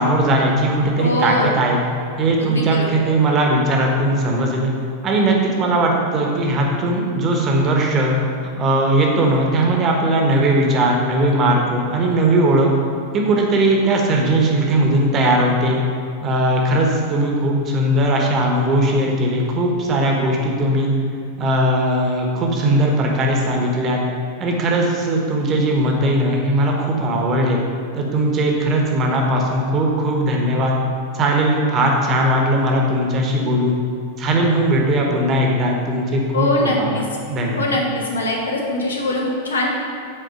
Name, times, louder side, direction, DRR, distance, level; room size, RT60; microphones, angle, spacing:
voice 1, 0.0-1.8 2.2-4.7 5.0-8.2 8.6-12.7 13.1-15.8 16.2-20.9 21.4-24.0 24.4-27.6 27.9-30.8 31.1-33.7 34.2-37.7, right 1 dB, 30° right, 0 dB, 1.2 m, -18 dB
voice 2, 1.0-1.5 2.4-2.9 36.3-37.1 37.6-39.7, left 1 dB, 70° left, -1 dB, 1.2 m, -22 dB
8.0 x 4.2 x 5.1 m, 2.3 s
figure-of-eight pair, 90°, 0 cm